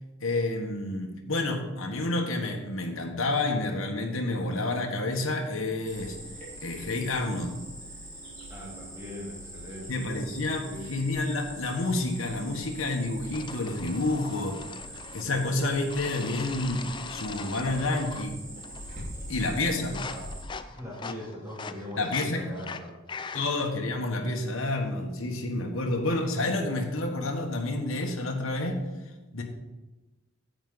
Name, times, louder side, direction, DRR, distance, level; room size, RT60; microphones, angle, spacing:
voice 1, 0.2-6.2 6.6-7.6 9.9-14.6 15.1-18.3 19.3-19.9 22.0-22.5 23.3-28.8 29.3-29.4, left 2 dB, 70° left, 1 dB, 1.3 m, -29 dB
Cricket, 5.8-20.4, right 1 dB, 35° right, 3.8 m, -43 dB
voice 2, 8.5-10.1 10.4-10.9 19.1-19.2 19.8-20.2 20.7-22.9 23.2-23.3, left 1 dB, 15° right, -4 dB, 2.2 m, -41 dB
sound 1, 13.3-15.4 15.9-18.4 18.6-19.1 19.4-23.7, left 5 dB, 20° left, 0.3 m, -42 dB
10.0 x 8.0 x 4.0 m, 1.1 s
head